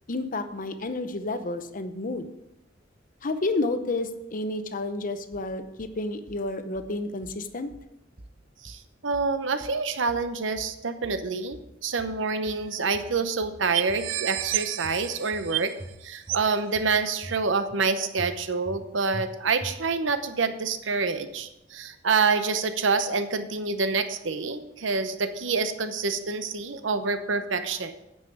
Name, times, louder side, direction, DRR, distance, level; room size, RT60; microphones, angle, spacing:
voice 1, 0.1-2.3 3.2-7.7, left 2 dB, 45° left, 10 dB, 0.7 m, -30 dB
sound 1, 5.3-5.9 6.3-6.9 7.2-7.9 8.2-8.9 9.1-9.8 10.1-10.8 11.0-11.7 12.0-12.7 12.9-13.6 13.9-14.5 14.8-15.5 15.8-16.4 16.7-17.4 17.7-17.8 18.2-18.8 19.1-19.3 19.6-20.1, right 1 dB, 30° right, 0.9 m, -44 dB
voice 2, 8.6-15.7 16.0-27.9, right 4 dB, 70° right, 10 dB, 0.8 m, -27 dB
sound 2, 12.4-12.5 12.7-12.8 13.3-13.4 13.7-15.9 16.3-16.6 17.3-17.4, right 15 dB, 85° right, 0.4 m, -31 dB
9.5 x 5.6 x 6.9 m, 0.91 s
head